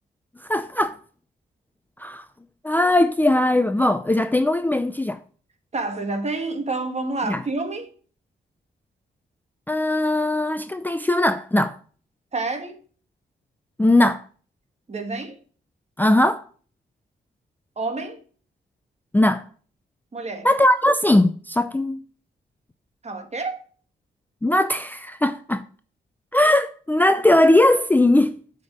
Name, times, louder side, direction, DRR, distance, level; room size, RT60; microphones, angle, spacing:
voice 1, 0.5-1.0 2.0-2.2 2.6-5.2 7.3-7.4 9.7-11.8 13.8-14.2 16.0-16.4 19.1-19.4 20.4-22.0 24.4-25.6 26.3-28.4, left 1 dB, 10° left, 0.5 m, -19 dB
voice 2, 5.7-7.9 12.3-12.8 14.9-15.4 17.7-18.2 20.1-20.5 23.0-23.6, right 3 dB, 35° right, 1.5 m, -28 dB
7.7 x 5.3 x 5.2 m
cardioid pair, 90°, 19 cm